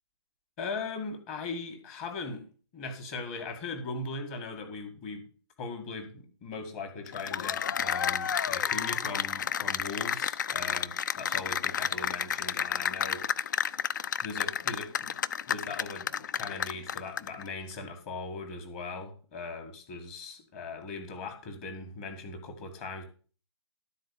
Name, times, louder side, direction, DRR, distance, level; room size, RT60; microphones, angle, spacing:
voice 1, 0.6-2.5 2.7-5.3 5.6-13.8 14.2-15.2 15.5-23.1, left 3 dB, 25° left, 5 dB, 2.0 m, -39 dB
Cheering / Applause, 7.1-17.4, left 8 dB, 40° left, 0.4 m, -31 dB
12.5 x 4.2 x 7.0 m, 0.40 s
figure-of-eight pair, 135°, 15 cm